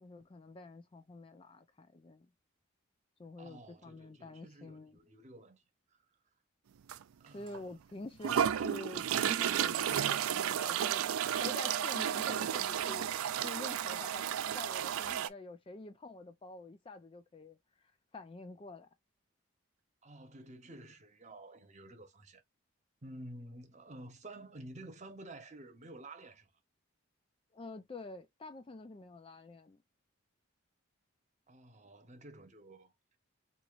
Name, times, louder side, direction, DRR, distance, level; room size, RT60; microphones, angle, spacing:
voice 1, 0.0-2.3 3.2-5.0 7.3-11.0 11.4-13.1 13.4-18.9 27.5-29.8, left 2 dB, 25° left, 0.3 m, -48 dB
voice 2, 3.4-5.6 5.9-6.0 7.2-7.7 20.0-22.4 23.0-26.5 31.5-32.9, right 1 dB, 35° right, 0.9 m, -51 dB
sound 1, 6.9-7.0 7.5-7.6 8.2-15.3, right 9 dB, 85° right, 0.4 m, -32 dB
4.5 x 2.8 x 2.5 m
head